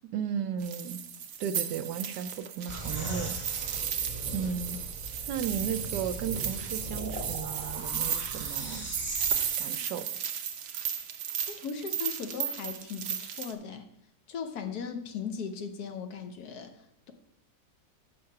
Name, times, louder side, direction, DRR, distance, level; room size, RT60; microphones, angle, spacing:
voice 1, 0.0-1.0 1.4-3.4 4.3-4.8 5.3-8.9 9.6-10.1, right 8 dB, 80° right, 11 dB, 1.2 m, -34 dB
sound 1, 0.6-13.5, right 8 dB, 65° right, 0.7 m, -35 dB
sound 2, 2.7-9.5, right 1 dB, 25° right, 2.0 m, -39 dB
voice 2, 4.2-4.6 11.5-13.8 14.3-17.1, left 6 dB, 65° left, 6 dB, 1.3 m, -38 dB
6.6 x 5.7 x 5.7 m, 0.81 s
omnidirectional pair, 1.8 m